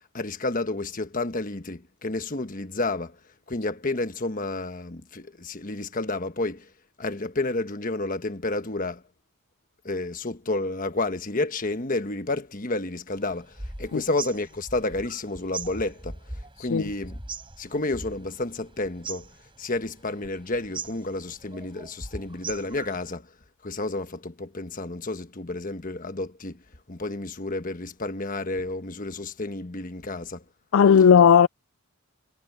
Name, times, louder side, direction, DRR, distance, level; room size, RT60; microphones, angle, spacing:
voice 1, 0.1-3.2 3.5-6.7 7.0-9.0 9.8-16.2 16.6-17.2 17.6-19.3 19.6-23.3 23.6-26.6 26.9-30.4, left 2 dB, 35° left, 1.2 m, -30 dB
sound 1, 13.1-23.1, right 3 dB, 20° right, 6.8 m, -40 dB
voice 2, 16.6-16.9 30.7-31.5, left 7 dB, 60° left, 0.3 m, -16 dB
head